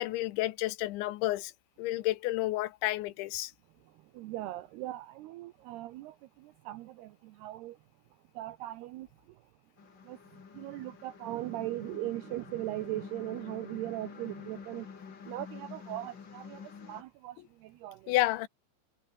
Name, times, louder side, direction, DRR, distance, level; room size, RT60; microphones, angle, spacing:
voice 1, 0.0-1.5 1.8-3.5 18.1-18.5, left 17 dB, 90° left, 3.3 m, -30 dB
voice 2, 4.1-7.8 8.4-9.1 10.1-10.2 10.5-14.9 15.3-18.1, right 16 dB, 75° right, 2.5 m, -39 dB
sound 1, 9.8-17.0, left 6 dB, 45° left, 1.6 m, -48 dB
omnidirectional pair, 5.3 m